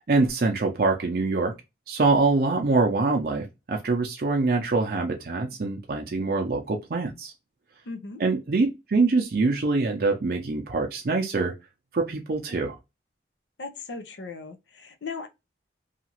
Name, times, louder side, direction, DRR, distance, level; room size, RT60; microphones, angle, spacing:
voice 1, 0.0-1.6 1.9-7.3 8.2-11.5 11.9-12.8, right 3 dB, 55° right, 0.5 m, -24 dB
voice 2, 7.9-8.2 13.6-15.3, left 4 dB, 90° left, 0.6 m, -37 dB
2.8 x 2.4 x 2.8 m
head